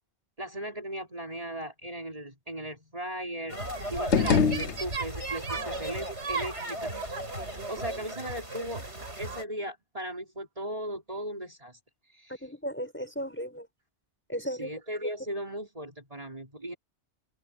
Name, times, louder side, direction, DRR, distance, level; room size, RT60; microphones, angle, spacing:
voice 1, 0.4-3.6 3.9-7.2 7.7-8.8 9.2-11.8 12.1-12.4 14.5-16.7, right 1 dB, 30° right, 4.1 m, -37 dB
sound 1, 3.5-9.4, right 2 dB, 85° right, 6.9 m, -35 dB
sound 2, 3.9-5.4, left 6 dB, 85° left, 1.3 m, -26 dB
voice 2, 12.4-13.7 14.3-14.7, equal, 10° left, 5.7 m, -35 dB
open air
omnidirectional pair, 1.1 m